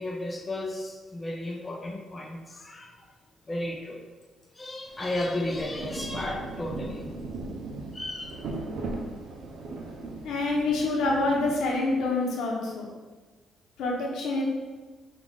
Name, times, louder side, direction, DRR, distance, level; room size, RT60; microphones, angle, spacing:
voice 1, 0.0-2.9 3.5-4.0 4.6-7.1 7.9-8.3, left 1 dB, 20° left, 1 dB, 0.5 m, -33 dB
Rain, 4.9-12.1, right 3 dB, 70° right, 0.6 m, -38 dB
voice 2, 10.2-12.9 13.8-14.4, left 2 dB, 80° left, -2 dB, 1.0 m, -26 dB
5.1 x 2.5 x 3.5 m, 1.3 s
cardioid pair, 90°, 0 cm